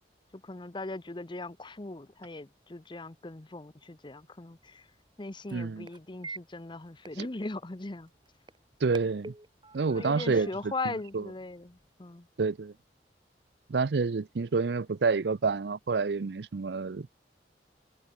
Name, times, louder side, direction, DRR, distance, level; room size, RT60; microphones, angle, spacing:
voice 1, 0.3-4.9 5.2-8.1 9.9-12.3, left 2 dB, 25° left, 0.8 m, -39 dB
sound 1, 4.1-11.9, right 3 dB, 25° right, 5.8 m, -51 dB
voice 2, 5.5-5.9 7.2-7.3 8.8-9.3 9.7-10.7 11.1-11.2 12.4-12.7 13.7-17.1, right 4 dB, 65° right, 0.5 m, -28 dB
head